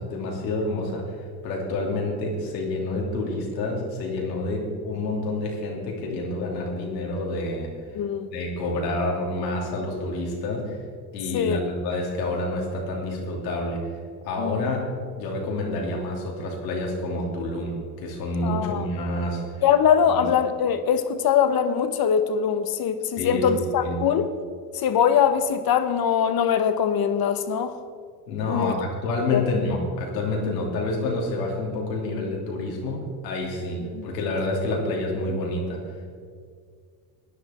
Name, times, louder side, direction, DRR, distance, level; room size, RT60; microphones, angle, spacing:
voice 1, 0.0-7.7 8.3-10.8 11.1-13.8 14.2-14.9 15.2-19.4 20.1-20.2 23.2-24.0 28.3-35.9, left 2 dB, 90° left, -1 dB, 3.0 m, -28 dB
voice 2, 7.9-8.3 11.3-11.6 14.4-14.7 18.4-18.9 19.6-24.3 24.7-27.7 28.5-28.7 29.3-29.4 33.9-34.1, left 8 dB, 45° left, 10 dB, 1.2 m, -22 dB
16.5 x 10.5 x 4.4 m, 2.1 s
supercardioid pair, 80°, 48 cm